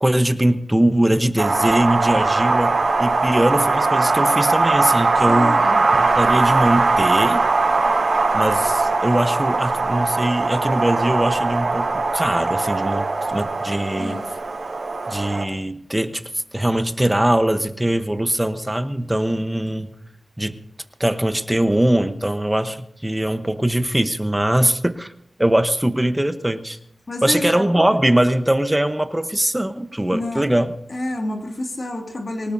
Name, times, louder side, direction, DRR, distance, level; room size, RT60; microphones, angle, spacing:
voice 1, 0.0-5.7 6.0-7.4 8.3-14.2 15.1-19.9 20.4-20.6 21.0-25.1 25.4-26.8 27.2-30.7, right 1 dB, 10° right, 1.0 m, -21 dB
Wind, 1.4-15.4, right 3 dB, 65° right, 5.0 m, -20 dB
voice 2, 5.3-5.8 14.0-14.3 27.1-27.5 30.1-30.5 30.9-32.5, left 1 dB, 50° left, 2.3 m, -28 dB
24.0 x 18.0 x 2.8 m
wide cardioid pair, 75°, 0 cm